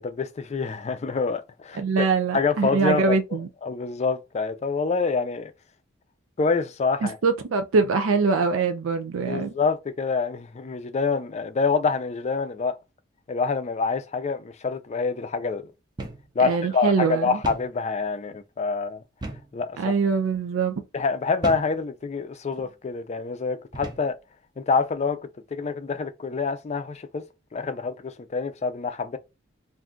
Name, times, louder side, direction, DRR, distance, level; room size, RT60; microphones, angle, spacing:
voice 1, 0.0-2.1 2.3-3.2 3.6-5.5 6.4-7.2 9.3-12.8 13.3-15.7 16.4-19.0 19.5-19.9 20.9-24.2 24.6-25.2 25.5-27.2 27.5-29.2, left 4 dB, 35° left, 0.4 m, -26 dB
voice 2, 1.8-3.5 7.0-9.5 16.4-17.4 19.8-20.7, right 4 dB, 90° right, 0.4 m, -23 dB
sound 1, 16.0-16.3 16.6-16.7 17.4-17.7 19.2-19.6 20.2-20.4 21.4-21.8 22.5-22.7 23.7-24.1, right 2 dB, 20° right, 0.6 m, -35 dB
2.5 x 2.3 x 3.7 m
head